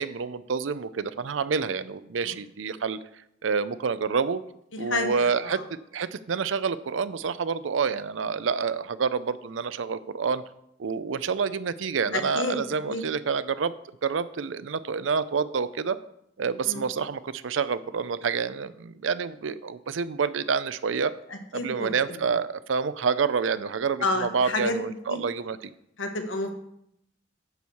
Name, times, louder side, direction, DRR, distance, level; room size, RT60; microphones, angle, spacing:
voice 1, 0.0-3.0 3.4-4.4 4.8-10.4 10.8-13.7 14.0-16.0 16.4-21.1 21.5-25.7, right 5 dB, 85° right, 15 dB, 0.5 m, -28 dB
voice 2, 4.9-5.6 12.1-12.6 12.9-13.0 16.6-16.9 21.3-22.2 24.0-24.8 25.1-25.2 26.0-26.5, left 2 dB, 85° left, 5 dB, 1.3 m, -30 dB
9.6 x 4.7 x 7.0 m, 0.76 s
head